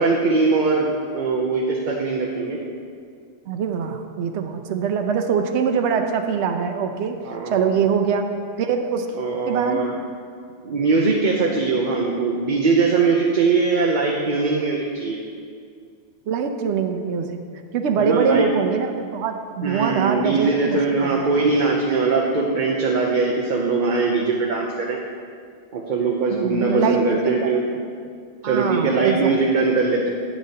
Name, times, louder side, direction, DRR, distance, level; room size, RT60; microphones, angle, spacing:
voice 1, 0.0-2.6 7.3-7.7 9.2-9.9 10.6-15.2 18.0-18.5 19.6-25.0 25.7-27.6 28.4-30.1, right 4 dB, 45° right, -1 dB, 0.8 m, -21 dB
voice 2, 3.5-7.2 7.5-8.3 8.6-9.1 9.5-9.8 16.3-17.4 17.7-21.3 26.3-27.5 28.4-29.4, right 6 dB, 75° right, 5 dB, 0.9 m, -23 dB
11.5 x 9.2 x 2.8 m, 2.2 s
omnidirectional pair, 1.2 m